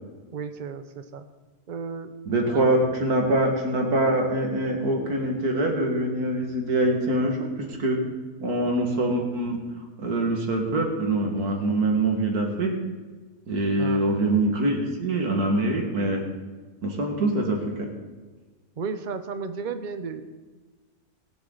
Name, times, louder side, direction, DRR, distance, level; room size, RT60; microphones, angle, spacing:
voice 1, 0.3-1.3 1.7-2.8 13.8-14.0 18.8-20.2, right 5 dB, 40° right, 8 dB, 0.8 m, -34 dB
voice 2, 2.3-8.1 8.4-9.6 10.0-12.8 13.5-16.3 16.8-17.9, right 1 dB, 85° right, 1 dB, 2.4 m, -24 dB
20.5 x 7.8 x 4.0 m, 1.3 s
omnidirectional pair, 1.6 m